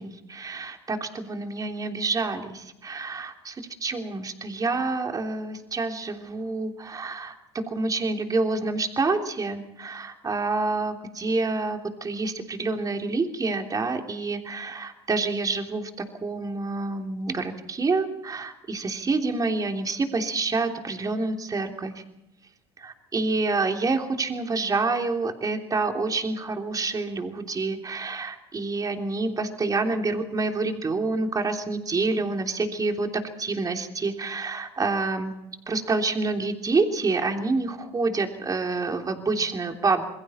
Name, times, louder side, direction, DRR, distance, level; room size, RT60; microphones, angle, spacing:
voice 1, 0.0-21.9 22.8-35.3 35.7-40.0, right 3 dB, 25° right, 4 dB, 3.3 m, -27 dB
28.0 x 21.5 x 4.4 m, 0.89 s
hypercardioid pair, 85°, 14 cm